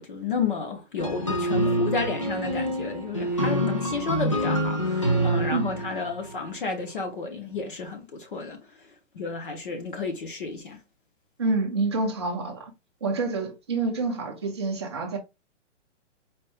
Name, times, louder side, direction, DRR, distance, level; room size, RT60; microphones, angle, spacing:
voice 1, 0.0-8.6 9.1-10.8, left 4 dB, 45° left, 0.8 m, -31 dB
sound 1, 1.0-6.4, right 1 dB, 30° left, 0.4 m, -26 dB
voice 2, 11.4-12.7 13.0-15.2, right 3 dB, 25° right, 0.6 m, -27 dB
4.2 x 2.2 x 3.4 m
hypercardioid pair, 175°, 36 cm